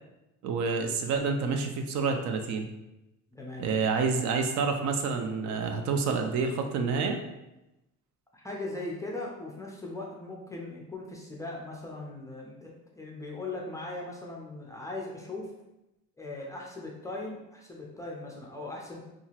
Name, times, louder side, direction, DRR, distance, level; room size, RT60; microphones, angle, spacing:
voice 1, 0.4-2.7 3.6-7.2, right 4 dB, 65° right, 4 dB, 0.4 m, -28 dB
voice 2, 3.3-3.7 8.3-15.5 16.2-19.0, left 2 dB, 10° left, -3 dB, 0.3 m, -39 dB
2.7 x 2.4 x 2.8 m, 0.94 s
cardioid pair, 135°, 31 cm